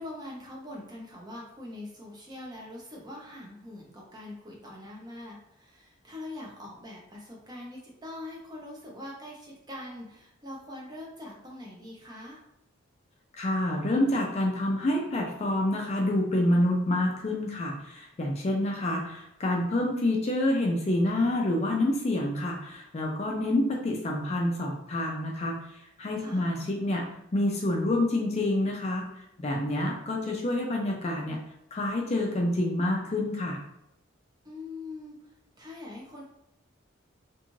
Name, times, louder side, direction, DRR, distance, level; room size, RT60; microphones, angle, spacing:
voice 1, 0.0-12.4 26.2-26.7 34.4-35.2 35.6-36.2, left 1 dB, 20° right, -2 dB, 0.6 m, -43 dB
voice 2, 13.4-25.6 26.0-27.0 27.3-29.0 29.4-31.4 31.7-33.6, left 1 dB, 35° left, 0 dB, 0.4 m, -27 dB
2.6 x 2.4 x 3.0 m, 0.82 s
head